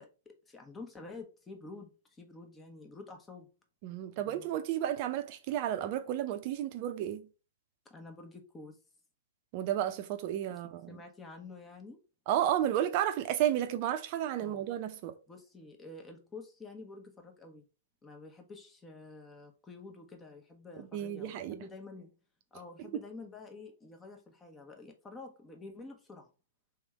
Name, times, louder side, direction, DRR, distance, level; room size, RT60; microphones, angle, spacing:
voice 1, 0.0-3.5 4.2-4.5 7.8-8.8 10.5-10.6 10.9-12.0 14.4-14.6 15.3-17.6 18.0-22.1 22.5-26.3, left 3 dB, 15° left, 1.1 m, -49 dB
voice 2, 3.8-7.3 9.5-11.0 12.3-15.1 20.8-21.6 22.8-22.9, right 11 dB, 45° right, 0.7 m, -32 dB
3.4 x 3.2 x 4.8 m
figure-of-eight pair, 115°, 0 cm